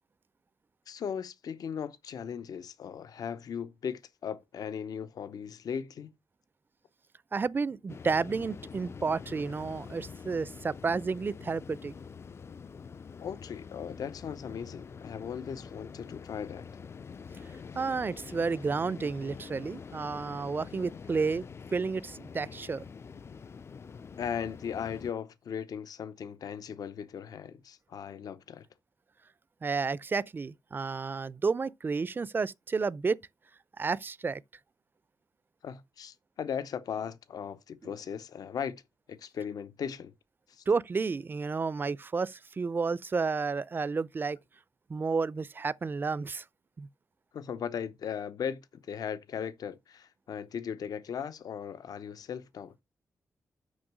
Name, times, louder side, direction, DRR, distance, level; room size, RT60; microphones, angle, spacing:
voice 1, 0.9-6.1 13.2-16.7 24.2-28.7 35.6-38.8 39.1-40.1 40.5-40.6 47.3-52.7, left 7 dB, 75° left, 0.8 m, -38 dB
voice 2, 7.3-11.9 17.7-21.4 21.7-22.8 29.6-33.2 33.8-34.4 40.7-44.4 44.9-46.4 46.8-46.9, right 4 dB, 35° right, 0.4 m, -31 dB
sound 1, 7.9-25.1, left 6 dB, 40° left, 0.4 m, -46 dB
6.3 x 5.4 x 6.0 m
cardioid pair, 90°, 6 cm